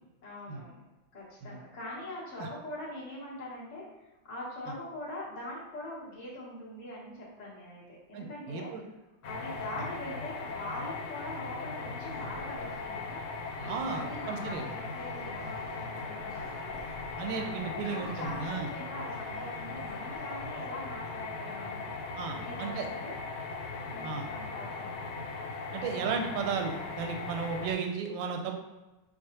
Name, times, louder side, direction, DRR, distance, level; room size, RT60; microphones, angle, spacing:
voice 1, 0.2-0.8 1.1-3.8 4.3-8.7 9.2-13.2 13.6-16.8 17.3-21.9 22.3-23.1 23.9-25.2, left 1 dB, 40° left, -7 dB, 0.6 m, -43 dB
voice 2, 8.1-8.8 13.7-14.6 17.2-18.7 22.2-22.9 24.0-24.3 25.7-28.5, right 5 dB, 75° right, 3 dB, 1.2 m, -34 dB
sound 1, 9.2-27.7, left 3 dB, 75° left, 1.4 m, -39 dB
sound 2, 12.0-20.6, left 1 dB, 5° left, 0.8 m, -53 dB
4.6 x 2.3 x 2.8 m, 1.1 s
omnidirectional pair, 2.4 m